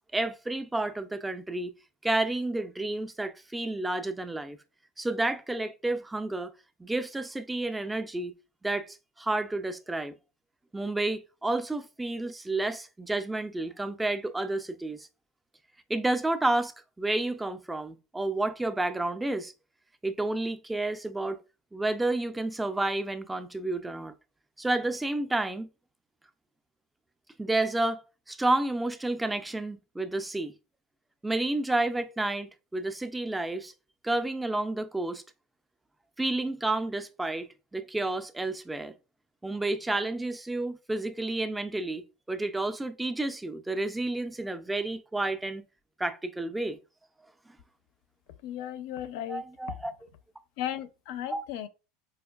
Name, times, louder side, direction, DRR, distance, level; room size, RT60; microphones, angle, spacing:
voice 1, 0.1-1.7 2.0-4.6 5.0-6.5 6.8-8.3 8.6-10.2 10.7-15.1 15.9-19.5 20.0-21.4 21.7-24.1 24.6-25.7 27.4-28.0 28.3-30.6 31.2-33.7 34.0-35.2 36.2-38.9 39.4-45.6 46.0-46.8 49.3-49.9 51.3-51.4, right 2 dB, 5° right, 0.3 m, -30 dB
voice 2, 48.4-49.4 50.6-51.7, left 11 dB, 65° left, 0.4 m, -35 dB
4.4 x 2.4 x 2.3 m
supercardioid pair, 145°, 0 cm